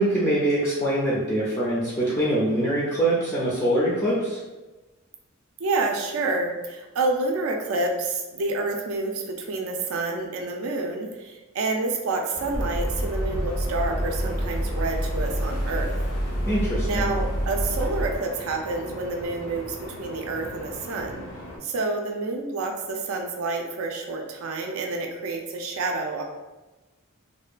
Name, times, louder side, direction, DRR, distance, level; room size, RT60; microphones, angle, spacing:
voice 1, 0.0-4.4 16.5-17.1, right 1 dB, 15° left, -8 dB, 0.4 m, -24 dB
voice 2, 5.6-16.0 16.8-21.3 21.6-26.2, right 3 dB, 65° right, 2 dB, 0.4 m, -28 dB
sound 1, 12.3-21.6, left 1 dB, 60° left, 0.7 m, -38 dB
sound 2, 12.6-18.2, equal, 90° left, 0.9 m, -27 dB
2.6 x 2.2 x 2.4 m, 1.1 s
head